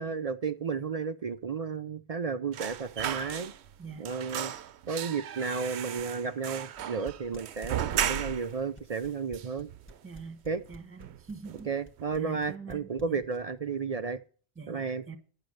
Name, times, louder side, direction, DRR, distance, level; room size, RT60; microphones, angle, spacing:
voice 1, 0.0-3.5 4.0-4.5 4.9-9.7 10.5-10.6 11.7-14.2 14.7-15.0, right 5 dB, 45° right, 12 dB, 0.5 m, -33 dB
sound 1, 2.5-3.8 4.0-8.6 8.9-9.0 9.3-10.2 10.5-10.7 11.0-11.7 12.0-12.2, right 10 dB, 80° right, 0.9 m, -36 dB
voice 2, 3.8-4.1 10.0-10.4 10.7-11.7 12.1-13.2 14.5-15.2, right 5 dB, 10° right, 9 dB, 1.3 m, -44 dB
sound 2, 5.7-13.6, equal, 10° left, 1.2 m, -50 dB
10.5 x 6.5 x 6.4 m, 0.40 s
omnidirectional pair, 1.1 m